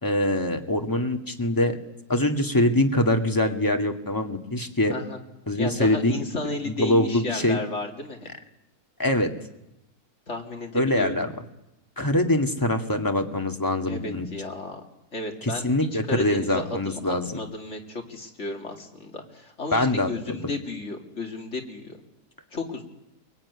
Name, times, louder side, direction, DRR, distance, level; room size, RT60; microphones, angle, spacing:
voice 1, 0.0-1.8 2.1-4.9 5.5-6.2 6.7-7.6 9.0-9.3 10.7-11.3 12.0-14.3 15.4-17.4 19.7-20.4, left 1 dB, 15° left, 5 dB, 2.0 m, -24 dB
voice 2, 5.6-8.3 10.3-11.1 13.9-14.8 15.1-15.7 16.1-22.0 22.5-22.8, left 3 dB, 45° left, 3 dB, 3.2 m, -33 dB
23.0 x 22.5 x 9.7 m, 0.87 s
omnidirectional pair, 1.6 m